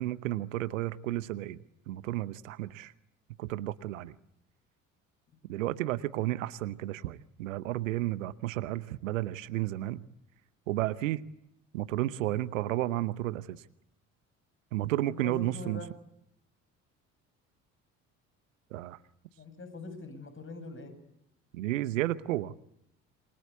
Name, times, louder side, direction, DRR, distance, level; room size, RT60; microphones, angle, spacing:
voice 1, 0.0-1.6 1.9-2.9 3.4-4.1 5.5-10.0 10.7-11.2 11.7-13.6 14.7-15.8 18.7-19.0 21.5-22.6, right 15 dB, 70° right, 16 dB, 1.0 m, -32 dB
voice 2, 15.1-15.9 19.3-20.9, left 3 dB, 30° left, 10 dB, 8.0 m, -43 dB
27.5 x 24.5 x 8.4 m, 0.79 s
figure-of-eight pair, 50°, 40 cm